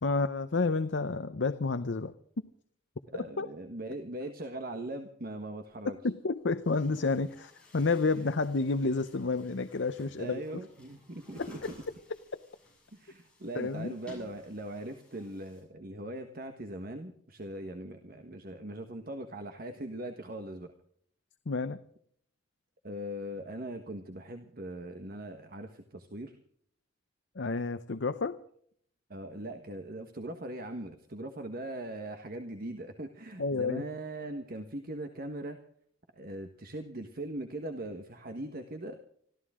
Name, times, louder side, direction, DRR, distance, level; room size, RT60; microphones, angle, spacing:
voice 1, 0.0-2.1 3.4-3.5 5.8-10.6 11.4-11.7 12.3-12.4 13.5-14.0 21.5-21.8 27.3-28.4 33.4-33.8, left 3 dB, 70° left, 11 dB, 0.7 m, -30 dB
voice 2, 3.1-6.0 8.2-8.3 10.2-11.6 12.9-20.7 22.8-26.4 29.1-35.6 36.2-39.0, right 1 dB, 50° right, 7 dB, 1.4 m, -40 dB
Chatter / Gurgling / Tap, 6.5-15.6, equal, 5° left, 7.1 m, -56 dB
25.0 x 14.5 x 3.7 m, 0.64 s
head